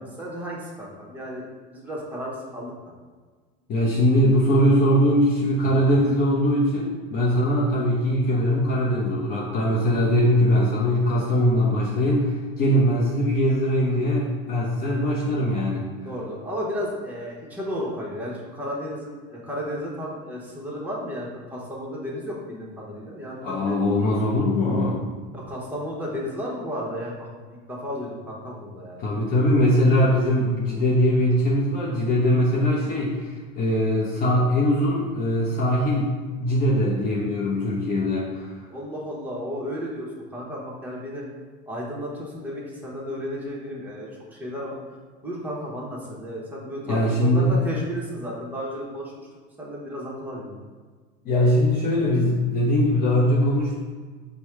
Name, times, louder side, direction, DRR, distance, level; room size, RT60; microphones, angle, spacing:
voice 1, 0.0-2.7 16.0-23.8 25.3-27.3 27.7-29.0 38.7-41.2 41.7-44.8 45.2-49.3 49.6-50.6, equal, 10° right, -5 dB, 1.0 m, -33 dB
voice 2, 3.7-15.8 23.4-25.0 29.0-36.1 36.4-38.6 46.9-47.6 51.2-53.8, equal, 45° left, -4 dB, 0.7 m, -21 dB
4.5 x 2.2 x 4.6 m, 1.5 s
supercardioid pair, 125°, 21 cm